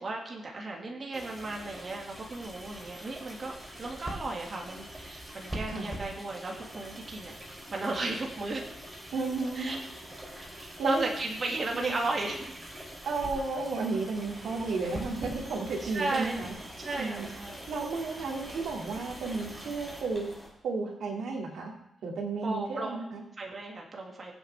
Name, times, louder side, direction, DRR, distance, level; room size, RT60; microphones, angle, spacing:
voice 1, 0.0-3.5 3.8-8.6 9.5-9.8 10.6-12.6 15.8-16.5 16.8-17.7 22.4-23.0 23.4-24.3, right 2 dB, 40° right, 0 dB, 2.1 m, -35 dB
sound 1, 1.1-20.0, right 1 dB, 15° right, 3.7 m, -44 dB
voice 2, 9.1-9.8 10.8-11.1 11.7-11.9 13.0-16.5 16.9-17.3 17.7-20.3 20.6-21.7 22.0-23.2, right 3 dB, 85° right, 0 dB, 2.3 m, -33 dB
sound 2, 14.2-20.5, equal, 5° left, 3.7 m, -50 dB
22.5 x 8.1 x 3.4 m, 0.82 s
wide cardioid pair, 125°, 0 cm